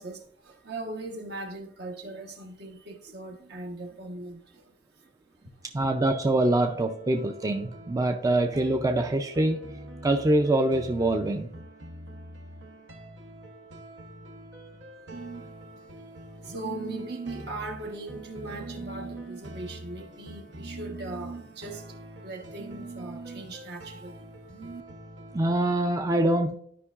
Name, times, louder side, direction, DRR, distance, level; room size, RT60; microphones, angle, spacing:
voice 1, 0.0-5.1 5.4-5.7 15.1-15.5 16.4-22.0 22.2-24.8, right 2 dB, 65° right, 1.1 m, -39 dB
voice 2, 5.7-9.6 10.0-11.5 25.3-26.6, right 1 dB, 20° right, 0.4 m, -24 dB
sound 1, 6.4-25.5, right 1 dB, 85° right, 1.0 m, -45 dB
12.5 x 5.2 x 2.4 m
head